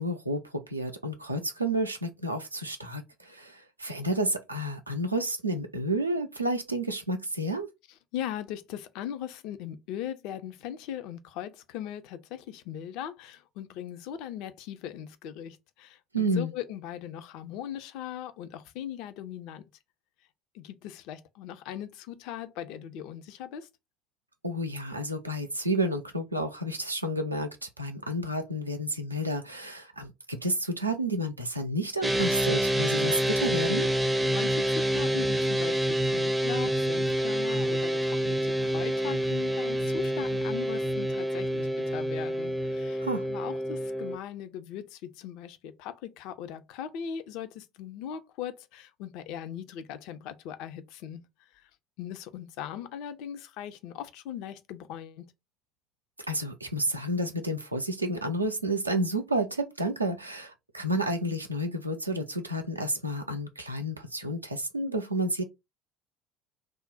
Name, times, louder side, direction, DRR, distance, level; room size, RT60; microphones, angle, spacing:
voice 1, 0.0-7.7 16.1-16.5 24.4-33.9 43.0-43.3 56.3-65.4, right 1 dB, 90° right, 0.4 m, -30 dB
voice 2, 8.1-19.7 20.5-23.7 34.2-51.7 52.0-55.3, left 10 dB, 60° left, 0.4 m, -39 dB
sound 1, 32.0-44.2, right 1 dB, 10° right, 0.4 m, -27 dB
2.4 x 2.1 x 3.8 m
figure-of-eight pair, 60°, 0 cm